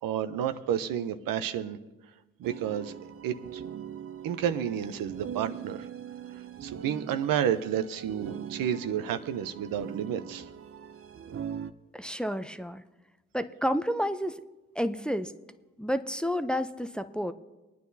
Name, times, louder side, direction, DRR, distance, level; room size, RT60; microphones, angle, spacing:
voice 1, 0.0-1.8 2.4-2.9 3.2-3.6 4.2-5.9 6.3-10.5, right 9 dB, 70° right, 11 dB, 0.8 m, -31 dB
sound 1, 2.4-11.7, right 8 dB, 40° right, 0.6 m, -41 dB
voice 2, 11.9-12.8 13.3-14.4 14.8-15.3 15.8-17.3, equal, 5° left, 10 dB, 0.6 m, -30 dB
23.0 x 9.4 x 2.8 m, 1.1 s
hypercardioid pair, 50°, 35 cm